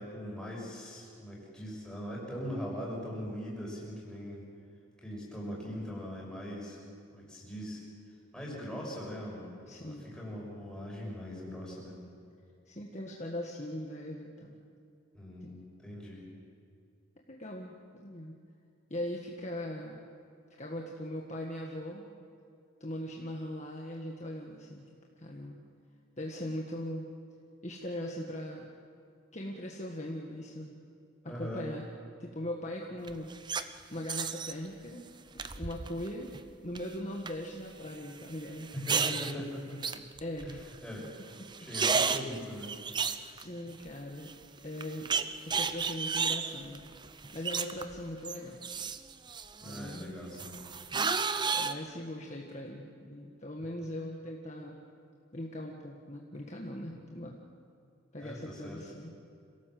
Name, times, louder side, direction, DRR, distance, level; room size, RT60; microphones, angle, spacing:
voice 1, 0.0-4.4 5.0-6.8 7.1-7.8 8.3-9.5 9.8-12.0 15.1-16.2 31.2-31.7 38.7-39.8 40.4-41.1 41.6-42.8 49.6-50.5 58.2-58.8, equal, 5° left, -4 dB, 6.4 m, -41 dB
voice 2, 9.7-10.1 12.7-14.5 15.4-15.5 17.3-17.7 18.0-18.4 18.9-20.1 20.6-22.1 22.8-24.9 25.2-25.6 26.2-27.0 27.6-28.7 29.3-30.8 31.3-31.8 32.2-35.0 35.5-36.3 36.6-38.7 40.2-40.6 43.1-44.3 44.6-45.1 45.4-46.9 47.3-48.6 49.6-50.0 51.5-54.8 55.3-57.4 58.1-59.1, left 1 dB, 35° left, 0 dB, 1.7 m, -40 dB
sound 1, 33.1-33.6 34.1-34.5 35.4-36.1 36.3-36.8 37.3-37.4 38.6-39.3 39.8-40.7 41.0-41.1 41.4-43.9 44.3-44.4 44.8-48.0 48.2-50.0 50.4-51.7, right 5 dB, 20° right, 0.6 m, -32 dB
27.5 x 17.5 x 7.8 m, 2.5 s
head